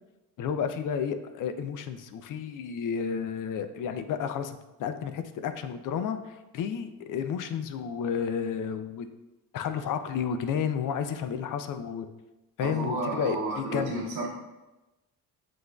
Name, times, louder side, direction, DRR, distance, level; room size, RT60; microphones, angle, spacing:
voice 1, 0.4-9.1 9.5-12.1 12.6-14.0, left 7 dB, 60° left, 9 dB, 0.5 m, -31 dB
voice 2, 12.6-14.3, right 3 dB, 80° right, -4 dB, 0.9 m, -32 dB
7.6 x 2.5 x 2.3 m, 1.0 s
cardioid pair, 95°, 36 cm